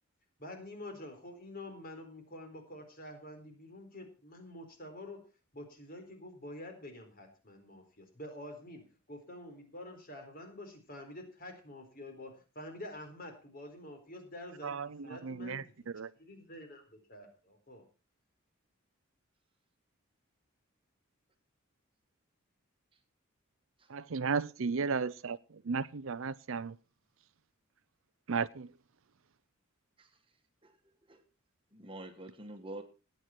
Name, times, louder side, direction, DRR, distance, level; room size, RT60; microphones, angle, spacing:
voice 1, 0.4-5.2 5.5-8.8 9.1-14.8 15.0-15.9 16.2-17.8, left 1 dB, 40° left, 4.2 m, -47 dB
voice 2, 14.6-15.6 15.9-16.1 23.9-26.8 28.3-28.7, right 5 dB, 65° right, 0.6 m, -34 dB
voice 3, 31.7-32.8, right 1 dB, 25° right, 1.5 m, -46 dB
18.0 x 9.1 x 4.5 m
head